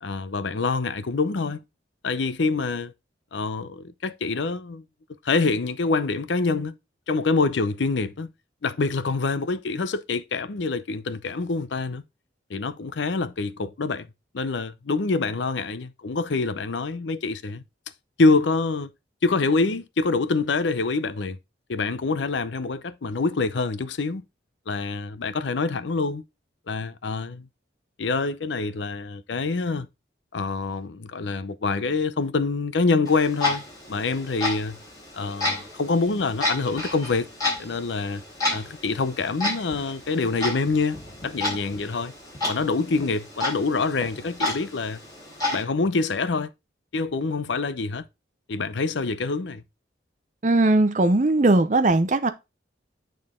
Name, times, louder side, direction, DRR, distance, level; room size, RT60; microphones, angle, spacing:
voice 1, 0.0-1.6 2.0-2.9 3.3-4.8 5.2-6.8 7.1-8.3 8.6-12.0 12.5-14.1 14.3-17.6 18.2-18.9 19.2-21.4 21.7-24.2 24.7-26.2 26.7-27.5 28.0-29.9 30.3-34.8 35.1-37.3 37.6-38.2 38.5-42.1 42.5-45.0 45.5-46.5 46.9-48.0 48.5-49.6, left 3 dB, 80° left, 0.6 m, -26 dB
Clock, 33.0-45.6, left 2 dB, 20° left, 4.0 m, -31 dB
voice 2, 50.4-52.3, right 2 dB, 40° right, 0.6 m, -19 dB
8.8 x 3.9 x 3.6 m
head